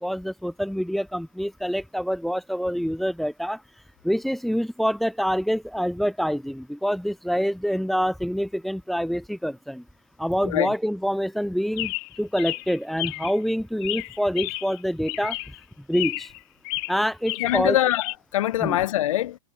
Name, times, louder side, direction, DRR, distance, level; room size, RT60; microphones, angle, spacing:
voice 1, 0.0-3.6 4.0-9.8 10.2-15.4 15.9-16.3 16.9-17.8 18.6-18.8, equal, ahead, 0.5 m, -26 dB
Chirp tweet, 11.8-13.4 13.8-14.8 15.1-15.6 15.9-16.4 16.6-18.1, left 40 dB or more, 50° left, 1.0 m, -32 dB
voice 2, 17.4-19.4, left 13 dB, 70° left, 1.0 m, -23 dB
hypercardioid pair, 110°, 17 cm